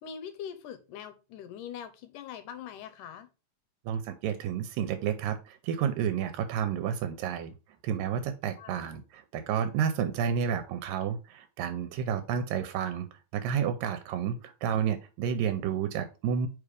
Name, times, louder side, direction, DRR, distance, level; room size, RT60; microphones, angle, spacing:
voice 1, 0.0-3.3 8.6-8.8, left 8 dB, 75° left, 10 dB, 2.3 m, -42 dB
voice 2, 3.9-7.5 7.8-13.1 13.3-16.5, right 8 dB, 85° right, 9 dB, 2.4 m, -30 dB
5.2 x 4.8 x 4.9 m, 0.30 s
omnidirectional pair, 3.9 m